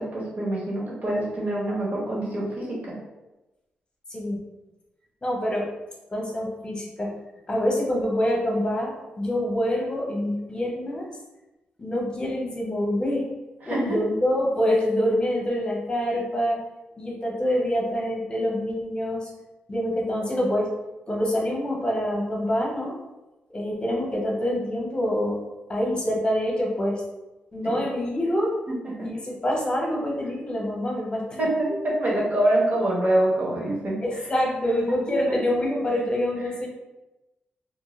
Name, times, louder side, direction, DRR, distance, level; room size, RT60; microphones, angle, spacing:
voice 1, 0.0-3.0 13.7-14.0 27.7-27.9 28.7-28.8 31.4-34.0 35.1-35.4, right 1 dB, 50° right, -5 dB, 1.1 m, -25 dB
voice 2, 4.1-4.4 5.2-5.7 6.1-7.1 7.5-11.1 11.8-13.2 13.6-16.6 17.0-19.3 19.7-20.7 21.1-23.0 23.5-25.4 25.7-27.0 27.5-28.5 29.0-31.4 31.7-31.8 34.0-36.7, equal, 25° left, -2 dB, 0.9 m, -26 dB
2.6 x 2.1 x 3.1 m, 1.0 s
cardioid pair, 75°, 3 cm